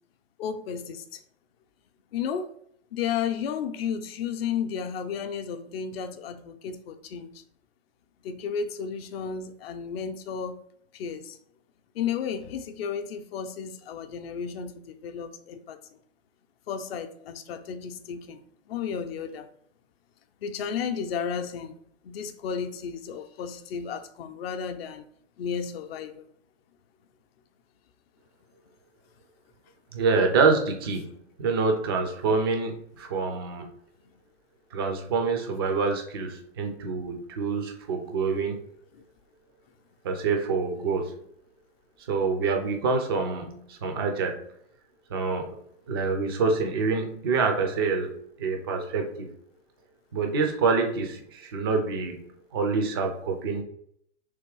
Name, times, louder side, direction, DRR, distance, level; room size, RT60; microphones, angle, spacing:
voice 1, 0.4-1.2 2.1-2.5 2.9-7.4 8.2-10.6 10.9-11.4 11.9-15.8 16.7-18.4 18.7-19.5 20.4-21.8 22.0-25.0 25.4-26.3, left 7 dB, 50° left, 9 dB, 0.6 m, -33 dB
voice 2, 29.9-31.1 31.4-33.7 34.7-38.6 40.0-41.1 42.0-44.4 45.1-45.6 45.9-49.3 50.1-52.2 52.5-53.6, right 4 dB, 20° right, 4 dB, 0.3 m, -26 dB
3.5 x 3.0 x 4.7 m, 0.69 s
hypercardioid pair, 150°, 37 cm